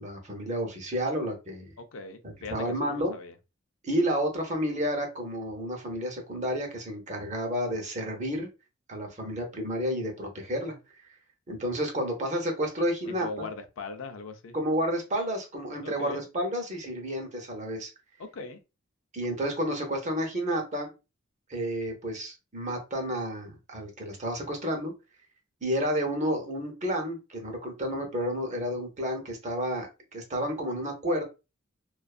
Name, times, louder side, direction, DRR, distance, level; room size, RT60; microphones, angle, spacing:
voice 1, 0.0-1.7 2.5-3.1 3.8-8.5 8.9-10.8 11.5-13.5 14.5-17.9 19.1-20.9 21.5-24.9 25.6-31.2, equal, 35° right, 0.7 m, -31 dB
voice 2, 1.8-3.3 13.1-14.6 15.8-16.2 18.3-18.6, left 3 dB, 70° left, 0.4 m, -40 dB
2.4 x 2.3 x 2.3 m
head